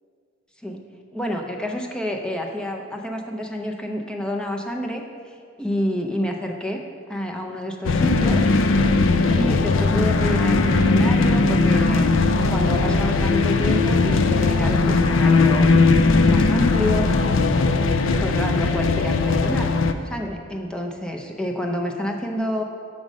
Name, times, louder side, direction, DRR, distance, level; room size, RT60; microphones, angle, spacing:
voice 1, 1.1-8.5 9.2-12.2 12.5-15.7 16.3-17.2 18.2-19.7 20.1-22.6, equal, 5° left, 2 dB, 0.5 m, -28 dB
sound 1, 7.8-19.9, left 3 dB, 80° left, 0.4 m, -18 dB
6.3 x 5.2 x 6.2 m, 2.1 s
head